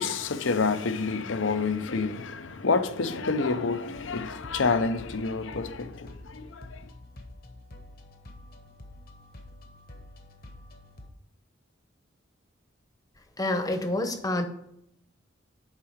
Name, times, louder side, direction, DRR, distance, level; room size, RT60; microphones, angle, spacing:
voice 1, 0.0-6.9, left 4 dB, 70° left, 0.6 m, -28 dB
sound 1, 3.9-11.1, left 1 dB, 50° left, 1.1 m, -47 dB
voice 2, 13.4-14.5, left 1 dB, 20° left, 0.8 m, -28 dB
7.4 x 4.8 x 5.0 m
head